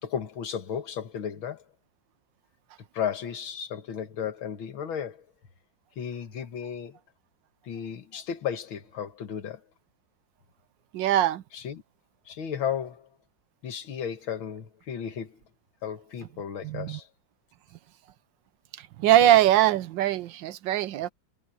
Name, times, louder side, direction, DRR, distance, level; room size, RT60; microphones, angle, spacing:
voice 1, 0.0-1.6 2.9-5.3 6.0-7.0 7.6-9.6 11.5-11.8 12.3-13.1 13.6-15.4 15.8-17.1, left 8 dB, 85° left, 2.3 m, -34 dB
voice 2, 10.9-11.4 16.6-17.0 19.0-21.1, right 12 dB, 70° right, 1.3 m, -21 dB
omnidirectional pair, 2.2 m